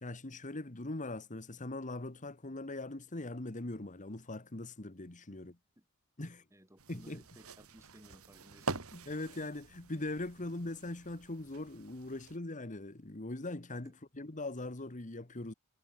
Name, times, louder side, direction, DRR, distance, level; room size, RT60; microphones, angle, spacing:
voice 1, 0.0-5.6 6.2-6.4 6.9-7.2 8.9-13.9 14.2-15.5, left 2 dB, 35° left, 1.5 m, -41 dB
voice 2, 6.2-9.0 13.8-13.9, equal, 15° right, 5.6 m, -59 dB
sound 1, 6.8-12.4, right 4 dB, 70° right, 2.1 m, -45 dB
head